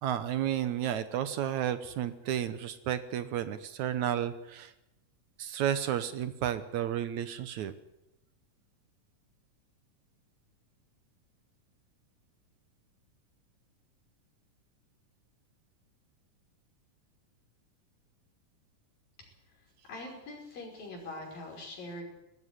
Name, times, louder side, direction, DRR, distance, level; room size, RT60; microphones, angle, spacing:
voice 1, 0.0-4.7 5.4-7.7, right 10 dB, 70° right, 12 dB, 2.1 m, -32 dB
voice 2, 19.9-22.0, left 2 dB, 90° left, 0 dB, 7.3 m, -42 dB
19.0 x 14.5 x 9.9 m, 0.91 s
omnidirectional pair, 3.9 m